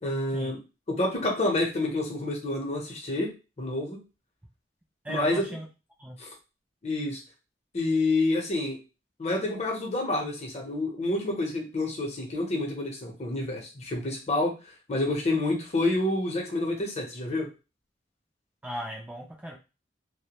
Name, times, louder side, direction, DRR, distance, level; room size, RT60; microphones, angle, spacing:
voice 1, 0.0-0.6 0.9-3.3 3.6-4.0 5.1-5.4 6.2-6.3 6.8-7.2 7.7-8.8 9.2-14.5 14.9-17.5, left 2 dB, 40° left, 0 dB, 0.7 m, -28 dB
voice 2, 5.0-5.7 6.0-6.2 18.6-19.5, right 1 dB, 10° right, -1 dB, 0.3 m, -36 dB
2.2 x 2.1 x 2.8 m, 0.29 s
head